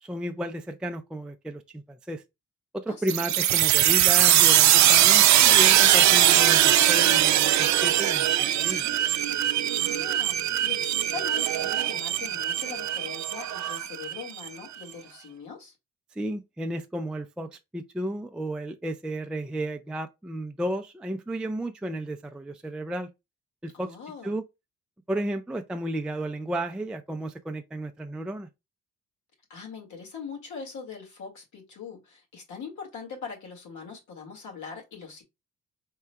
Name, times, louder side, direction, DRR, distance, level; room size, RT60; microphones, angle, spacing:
voice 1, 0.0-2.2 2.7-8.8 16.1-23.1 23.6-24.0 24.2-24.4 25.1-28.5, right 1 dB, 5° right, 0.3 m, -33 dB
voice 2, 2.9-3.3 9.7-15.8 23.7-24.4 29.5-35.2, left 6 dB, 80° left, 2.0 m, -41 dB
sound 1, 3.1-14.5, right 12 dB, 70° right, 0.5 m, -21 dB
4.3 x 3.7 x 2.2 m
cardioid pair, 115°, 29 cm